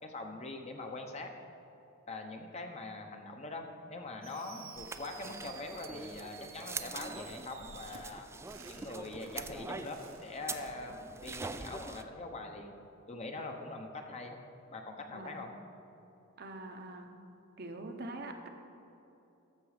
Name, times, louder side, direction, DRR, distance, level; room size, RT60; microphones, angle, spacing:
voice 1, 0.0-1.3 2.1-8.3 8.7-11.0 11.2-12.7 13.1-14.4 14.7-15.5, left 2 dB, 30° left, 3 dB, 0.9 m, -43 dB
Fireworks, 4.2-10.3, right 7 dB, 75° right, 1.0 m, -53 dB
sound 1, 4.8-12.0, right 3 dB, 15° right, 0.3 m, -44 dB
voice 2, 15.1-15.5 16.4-17.1 17.6-18.5, right 2 dB, 50° right, 4 dB, 0.9 m, -44 dB
13.5 x 6.1 x 5.0 m, 2.9 s
head